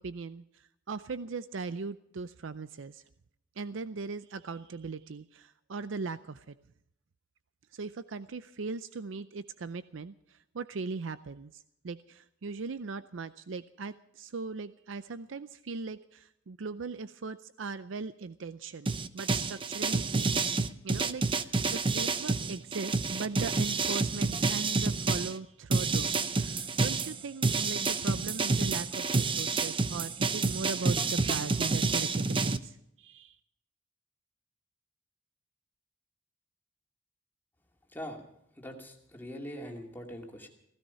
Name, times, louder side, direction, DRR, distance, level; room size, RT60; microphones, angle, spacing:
voice 1, 0.0-3.0 3.6-6.6 7.7-20.4 20.8-33.4, right 4 dB, 75° right, 13 dB, 0.5 m, -39 dB
sound 1, 18.9-25.3 25.7-32.6, right 3 dB, 25° right, 0.7 m, -29 dB
voice 2, 38.6-40.5, equal, 10° left, 1 dB, 2.5 m, -42 dB
16.0 x 15.5 x 5.7 m, 0.77 s
head